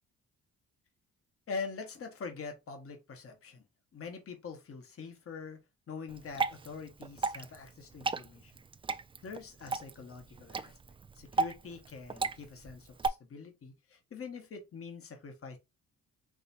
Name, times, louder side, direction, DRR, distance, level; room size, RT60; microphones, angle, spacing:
voice 1, 1.5-3.6 3.9-5.6 5.9-8.5 9.2-10.8 11.1-15.6, left 5 dB, 50° left, 1.5 m, -44 dB
Water / Drip, 6.1-13.1, right 4 dB, 20° right, 0.4 m, -36 dB
5.2 x 3.3 x 2.7 m
cardioid pair, 90°, 30 cm